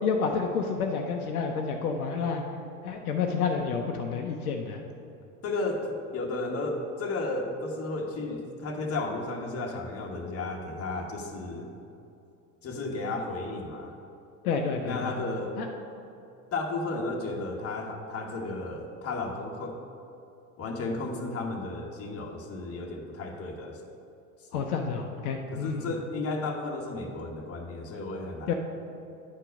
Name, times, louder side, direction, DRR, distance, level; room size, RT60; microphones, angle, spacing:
voice 1, 0.0-2.4 2.8-4.8 14.4-15.1 15.6-15.7 24.5-25.9 28.5-28.6, left 5 dB, 70° left, 3 dB, 0.8 m, -29 dB
voice 2, 5.4-11.7 12.6-13.9 14.8-15.6 16.5-19.8 20.6-23.8 24.5-24.7 25.5-28.5, left 2 dB, 30° left, 1 dB, 1.4 m, -33 dB
10.5 x 4.5 x 5.2 m, 2.7 s
hypercardioid pair, 80°, 45 cm